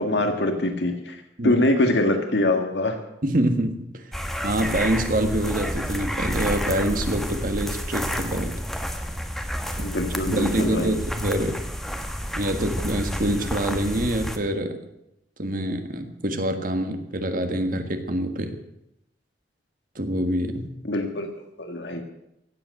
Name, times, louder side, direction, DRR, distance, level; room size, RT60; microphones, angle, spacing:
voice 1, 0.0-3.0 9.8-10.9 20.8-21.3 21.6-22.0, left 1 dB, 75° left, 5 dB, 1.7 m, -24 dB
voice 2, 3.2-4.1 4.4-8.5 10.3-11.6 12.4-14.8 15.4-18.6 19.9-20.7, right 1 dB, 50° right, 7 dB, 1.6 m, -26 dB
sound 1, 4.1-14.4, equal, ahead, 1.1 m, -30 dB
16.0 x 8.0 x 7.7 m, 0.83 s
head